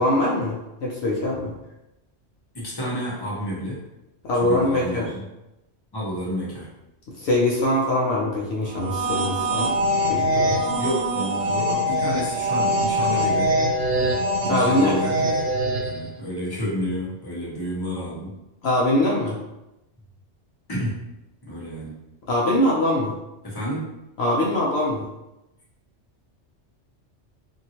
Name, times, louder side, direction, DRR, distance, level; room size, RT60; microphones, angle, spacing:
voice 1, 0.0-1.5 4.2-5.1 7.2-9.7 10.1-10.8 14.5-15.0 18.6-19.4 22.3-23.1 24.2-25.0, left 1 dB, 70° left, -4 dB, 0.9 m, -22 dB
voice 2, 2.5-3.8 4.4-5.2 5.9-6.7 10.8-13.5 14.4-15.4 15.8-18.3 20.7-21.0 21.4-21.9 23.4-23.8, equal, 20° left, -6 dB, 0.9 m, -30 dB
sound 1, 8.7-16.1, equal, 90° right, 0.9 m, -23 dB
2.7 x 2.6 x 2.8 m, 0.93 s
omnidirectional pair, 1.2 m